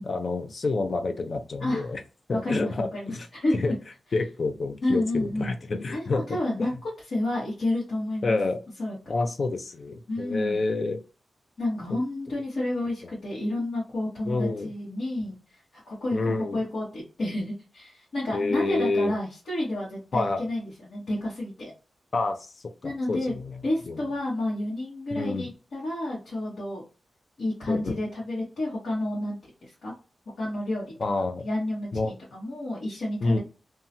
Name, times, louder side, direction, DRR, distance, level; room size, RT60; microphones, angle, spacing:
voice 1, 0.0-2.0 2.3-3.3 3.5-3.7 4.1-6.7 8.2-8.6 9.1-11.0 11.9-12.0 14.3-14.7 16.1-16.6 18.3-19.1 20.1-20.4 22.1-22.5 22.8-24.0 25.1-25.5 27.7-28.0 31.0-31.5 31.9-32.1 33.2-33.4, left 3 dB, 45° left, 7 dB, 0.5 m, -28 dB
voice 2, 1.6-1.9 2.3-3.7 4.8-5.5 5.9-6.7 7.1-8.4 8.8-9.0 10.1-10.6 11.6-15.4 15.7-21.7 22.8-23.4 23.6-26.8 27.4-29.9 30.4-31.0 31.4-33.4, left 1 dB, 65° left, -8 dB, 1.3 m, -30 dB
2.8 x 2.3 x 2.8 m, 0.32 s
wide cardioid pair, 160°, 0 cm